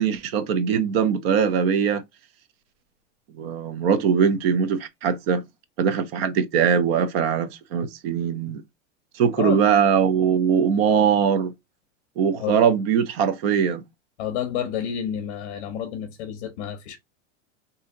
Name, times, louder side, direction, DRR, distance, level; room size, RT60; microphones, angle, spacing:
voice 1, 0.0-2.0 3.3-5.4 5.8-8.6 9.1-11.5 12.2-13.8, right 7 dB, 50° right, 0.6 m, -21 dB
voice 2, 14.2-17.0, left 9 dB, 40° left, 0.7 m, -30 dB
2.8 x 2.7 x 3.6 m
supercardioid pair, 170°, 39 cm